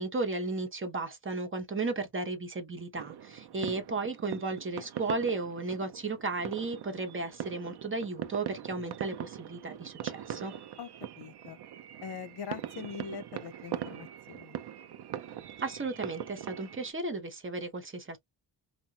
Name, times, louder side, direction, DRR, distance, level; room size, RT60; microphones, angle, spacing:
voice 1, 0.0-10.5 15.6-18.2, right 3 dB, 30° right, 0.9 m, -34 dB
sound 1, 2.9-16.9, right 10 dB, 65° right, 0.7 m, -41 dB
voice 2, 11.2-11.6 12.0-14.6, left 6 dB, 65° left, 0.9 m, -42 dB
5.6 x 2.0 x 2.8 m
wide cardioid pair, 180°, 43 cm